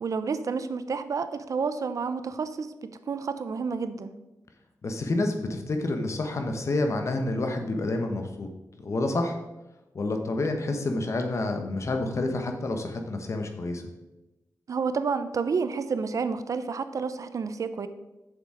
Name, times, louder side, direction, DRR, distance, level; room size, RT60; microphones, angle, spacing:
voice 1, 0.0-4.1 14.7-17.9, right 5 dB, 60° right, 12 dB, 0.6 m, -30 dB
voice 2, 4.8-8.5 8.8-9.4 9.9-13.8, left 2 dB, 50° left, 5 dB, 1.2 m, -28 dB
7.5 x 7.0 x 4.9 m, 1.0 s
wide cardioid pair, 110°, 6 cm